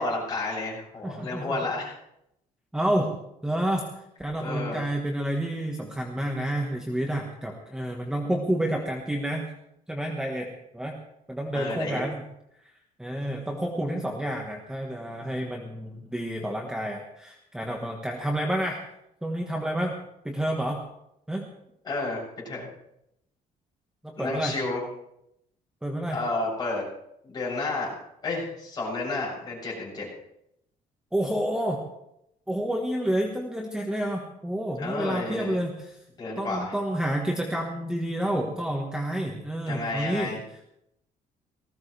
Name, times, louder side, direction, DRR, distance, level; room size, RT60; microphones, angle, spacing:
voice 1, 0.0-1.9 4.4-4.8 11.5-12.0 21.8-22.7 24.2-24.8 26.1-26.8 27.2-28.0 28.2-30.1 34.8-35.6 36.2-36.7 39.7-40.4, left 2 dB, 30° left, -4 dB, 7.7 m, -31 dB
voice 2, 1.0-1.6 2.7-3.2 3.4-3.9 4.2-9.5 9.9-10.9 11.3-12.2 13.0-18.8 19.2-19.9 20.2-20.8 21.3-21.5 24.0-24.6 25.8-26.2 31.1-31.8 32.5-36.0 36.4-40.3, right 1 dB, 5° right, 0 dB, 1.4 m, -29 dB
19.0 x 16.0 x 3.4 m, 0.80 s
cardioid pair, 160°, 15 cm